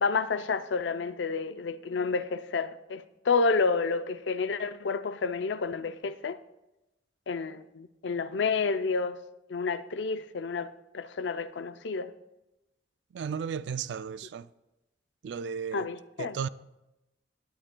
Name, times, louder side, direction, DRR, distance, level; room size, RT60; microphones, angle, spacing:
voice 1, 0.0-6.4 7.3-9.2 9.5-12.1 15.7-16.4, left 4 dB, 80° left, 0.5 m, -30 dB
voice 2, 13.1-14.5 15.2-15.9 16.2-16.5, right 6 dB, 75° right, 0.3 m, -34 dB
18.0 x 10.5 x 2.2 m
head